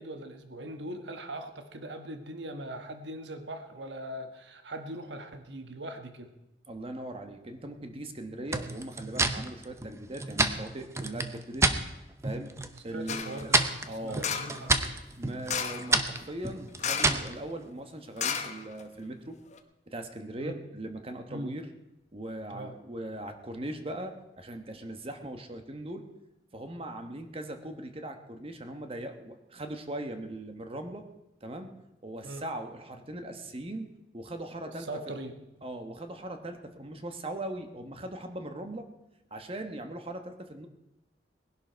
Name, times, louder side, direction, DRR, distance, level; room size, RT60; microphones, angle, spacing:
voice 1, 0.0-6.3 12.9-13.7 14.0-14.8 20.4-20.6 21.3-21.5 22.5-22.8 32.2-32.4 34.6-35.3, right 1 dB, 85° right, 7 dB, 1.3 m, -40 dB
voice 2, 6.7-11.7 12.2-12.5 12.8-13.5 13.9-14.3 15.2-19.4 19.9-21.7 22.1-26.1 26.5-31.0 31.4-31.7 32.0-33.9 34.1-34.9 35.6-38.9 39.3-40.7, right 1 dB, 35° right, 6 dB, 1.2 m, -39 dB
sound 1, 8.5-11.8 12.2-12.8 13.1-17.3, right 3 dB, 15° right, 0.7 m, -29 dB
sound 2, 13.1-13.4 14.2-14.6 15.5-15.9 16.8-17.3 17.5-17.6 18.2-19.0 19.5-19.6, left 7 dB, 40° left, 1.0 m, -33 dB
19.0 x 11.0 x 4.6 m, 0.93 s
head